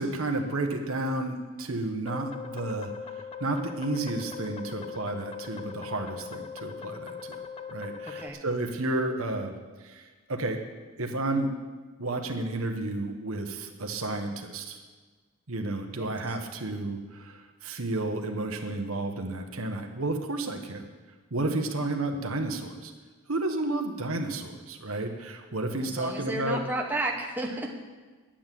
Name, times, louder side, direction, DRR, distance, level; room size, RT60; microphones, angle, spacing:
voice 1, 0.0-2.9 3.4-7.4 7.7-9.5 9.8-10.6 11.0-11.5 12.0-14.8 15.5-20.9 21.3-22.9 23.3-26.6, right 2 dB, 70° right, 4 dB, 1.3 m, -31 dB
sound 1, 2.1-8.3, left 6 dB, 25° left, 0.6 m, -40 dB
voice 2, 8.0-8.4 16.0-16.4 25.8-27.7, right 1 dB, 10° right, 0 dB, 1.0 m, -33 dB
10.5 x 8.8 x 7.6 m, 1.3 s
head